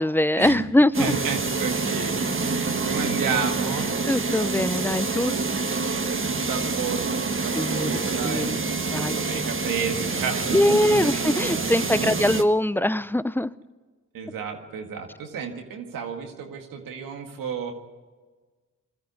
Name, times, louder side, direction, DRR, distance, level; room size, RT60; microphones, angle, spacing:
voice 1, 0.0-1.1 4.1-5.4 7.5-8.0 8.2-8.6 8.8-9.4 10.5-13.5, left 1 dB, 5° left, 17 dB, 0.6 m, -22 dB
sound 1, 0.9-12.4, right 4 dB, 40° right, 1.5 m, -27 dB
voice 2, 1.0-3.9 6.3-11.0 11.3-12.2 14.1-17.7, right 6 dB, 85° right, 4 dB, 1.9 m, -32 dB
20.5 x 13.5 x 9.6 m, 1.4 s
supercardioid pair, 40°, 33 cm